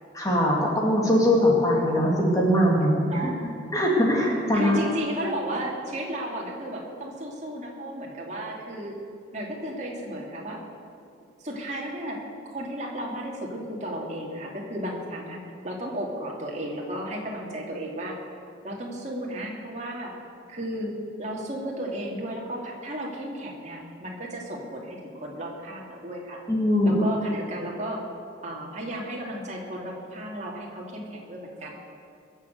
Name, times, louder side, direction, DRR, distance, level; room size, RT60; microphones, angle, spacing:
voice 1, 0.1-3.3 3.7-4.8 26.5-27.0, equal, 15° left, -3 dB, 2.2 m, -21 dB
voice 2, 3.1-3.4 4.5-8.9 9.3-10.6 11.4-12.2 12.5-18.2 18.6-20.1 20.5-26.4 26.8-28.0 28.4-31.8, equal, 35° right, -2 dB, 2.6 m, -34 dB
21.0 x 7.4 x 8.0 m, 2.5 s
head